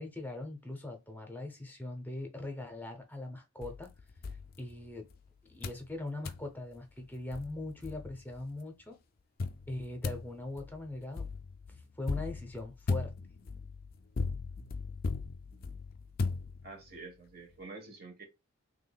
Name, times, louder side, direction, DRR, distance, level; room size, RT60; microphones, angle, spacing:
voice 1, 0.0-3.9 4.6-5.1 5.5-9.0 9.7-11.3 11.7-13.1, left 2 dB, 10° left, 0.7 m, -41 dB
sound 1, 3.6-5.2 5.6-5.9 6.2-6.5 7.0-7.1 7.3-8.4 9.4-17.0, left 4 dB, 45° left, 0.4 m, -38 dB
voice 2, 16.6-18.2, right 3 dB, 50° right, 1.2 m, -47 dB
3.5 x 3.3 x 2.2 m
head